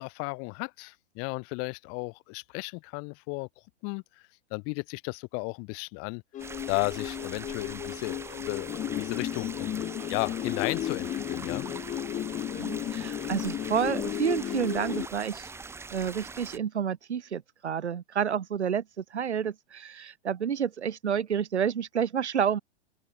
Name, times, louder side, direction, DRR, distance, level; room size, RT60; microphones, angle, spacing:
voice 1, 0.0-3.5 3.8-4.0 4.5-6.2 6.7-9.8 10.1-11.6, left 35 dB, 40° left, 4.4 m, -34 dB
sound 1, 6.3-15.1, left 11 dB, 20° left, 1.4 m, -34 dB
sound 2, 6.4-16.6, right 4 dB, 10° right, 0.9 m, -43 dB
voice 2, 12.5-15.5 15.9-22.6, right 8 dB, 75° right, 2.1 m, -30 dB
open air
hypercardioid pair, 110°, 34 cm